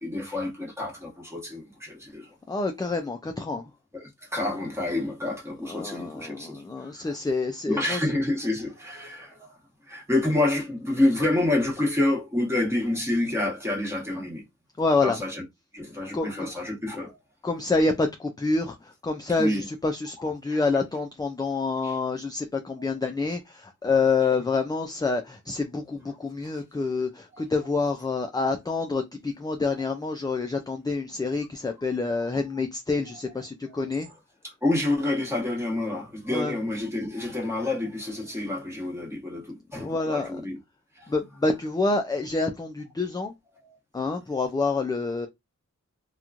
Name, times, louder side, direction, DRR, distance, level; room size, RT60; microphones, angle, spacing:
voice 1, 0.0-2.3 3.9-7.2 7.7-9.5 9.8-14.4 15.0-15.4 15.7-17.2 19.4-19.7 21.8-22.0 22.8-22.9 27.4-27.5 33.7-33.8 34.4-40.6 40.9-41.1, left 2 dB, 10° right, 1.2 m, -28 dB
voice 2, 2.5-3.7 5.6-8.0 14.8-15.2 16.1-16.5 17.4-34.1 36.3-36.6 39.8-40.4 41.1-43.3 43.9-45.3, left 3 dB, 15° left, 0.3 m, -27 dB
2.9 x 2.2 x 2.4 m
wide cardioid pair, 75°, 30 cm